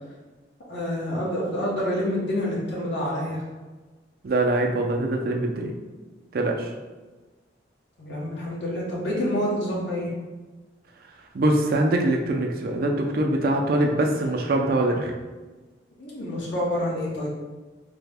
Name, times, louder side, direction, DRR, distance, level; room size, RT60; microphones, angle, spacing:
voice 1, 0.7-3.4 8.0-10.1 16.0-17.3, equal, 80° left, -5 dB, 1.0 m, -27 dB
voice 2, 4.2-5.7 6.3-6.7 11.3-15.1, right 1 dB, 55° right, 2 dB, 0.4 m, -23 dB
3.3 x 2.1 x 3.4 m, 1.3 s
head